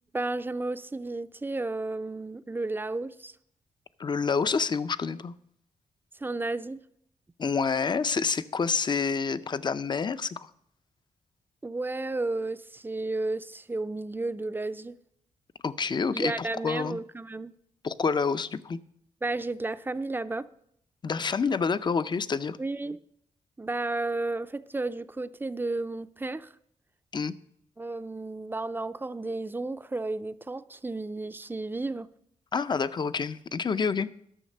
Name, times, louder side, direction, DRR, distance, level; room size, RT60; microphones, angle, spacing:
voice 1, 0.1-3.3 6.2-6.8 11.6-15.0 16.1-17.5 19.2-20.5 22.6-23.0 23.6-26.5 27.8-32.1, right 2 dB, 15° right, 0.5 m, -32 dB
voice 2, 4.0-5.3 7.4-10.4 15.6-17.0 17.8-18.8 21.0-22.6 27.1-27.3 32.5-34.1, left 5 dB, 35° left, 0.5 m, -28 dB
12.5 x 6.4 x 6.5 m
cardioid pair, 85°, 13 cm